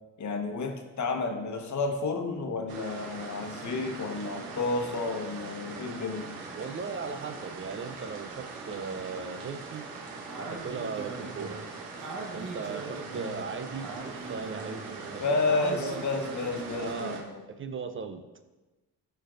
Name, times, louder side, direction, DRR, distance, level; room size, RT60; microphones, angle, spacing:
voice 1, 0.2-6.3 15.2-17.4, left 3 dB, 50° left, 4 dB, 1.2 m, -31 dB
sound 1, 2.7-17.2, right 4 dB, 85° right, 1.0 m, -42 dB
voice 2, 6.5-9.8 10.4-11.6 12.3-15.2 15.5-16.0 16.8-17.2 17.5-18.2, right 5 dB, 35° right, 9 dB, 0.5 m, -37 dB
Speech, 10.3-17.0, right 3 dB, 55° right, 1.3 m, -41 dB
12.5 x 4.5 x 2.5 m, 1.2 s
supercardioid pair, 60°, 36 cm